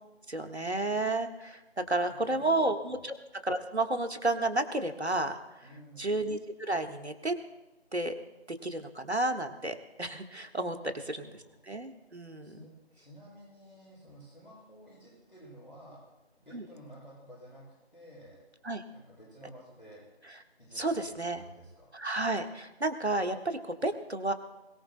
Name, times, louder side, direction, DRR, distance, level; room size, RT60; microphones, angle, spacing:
voice 1, 0.3-3.1 3.4-5.6 6.0-7.4 7.9-8.1 8.5-11.3 11.7-12.6 16.5-16.6 18.6-18.8 20.7-21.4 21.9-24.3, right 2 dB, 75° right, 6 dB, 1.6 m, -31 dB
voice 2, 1.8-2.4 2.9-3.1 5.6-6.2 10.8-11.6 12.4-16.0 16.4-17.6 17.9-18.4 18.9-20.0 20.6-20.9 21.3-21.9, equal, 50° left, -5 dB, 6.7 m, -52 dB
21.5 x 18.5 x 2.2 m, 1.0 s
figure-of-eight pair, 170°, 33 cm